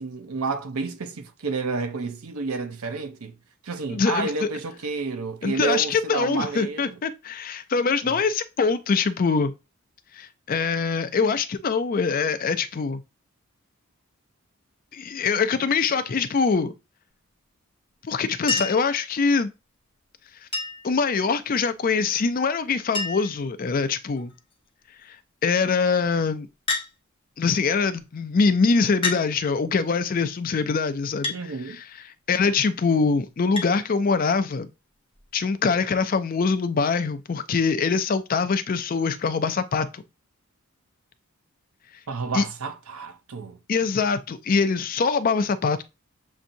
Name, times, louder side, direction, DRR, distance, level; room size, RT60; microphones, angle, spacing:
voice 1, 0.0-3.3 3.6-7.0 8.0-8.2 31.3-31.8 42.1-43.6, right 4 dB, 85° right, 0.7 m, -30 dB
voice 2, 3.9-4.5 5.4-9.5 10.1-13.0 14.9-16.7 18.0-19.5 20.8-24.3 25.1-25.2 25.4-26.5 27.4-31.3 31.7-31.8 32.3-34.7 35.3-40.0 42.3-42.4 43.7-45.8, left 5 dB, 40° left, 0.4 m, -23 dB
Chink clink, 18.5-18.9 20.5-20.9 22.3-22.4 22.6-22.7 22.9-23.4 24.2-24.5 26.7-26.9 28.0-28.1 29.0-29.3 31.2-31.4 33.6-33.7 35.1-35.2, left 3 dB, 25° left, 0.9 m, -28 dB
7.2 x 2.7 x 2.6 m
head